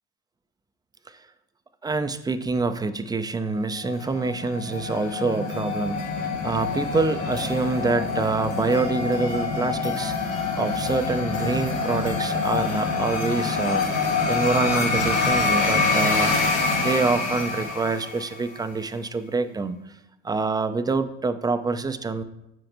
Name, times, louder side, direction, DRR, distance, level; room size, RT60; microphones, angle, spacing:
voice 1, 1.8-5.9 6.2-16.4 16.8-19.8 20.2-22.2, right 3 dB, 10° right, 10 dB, 0.4 m, -26 dB
sound 1, 3.8-18.5, left 4 dB, 75° left, 1.3 m, -26 dB
6.4 x 6.0 x 2.6 m, 0.86 s
hypercardioid pair, 65°, 35 cm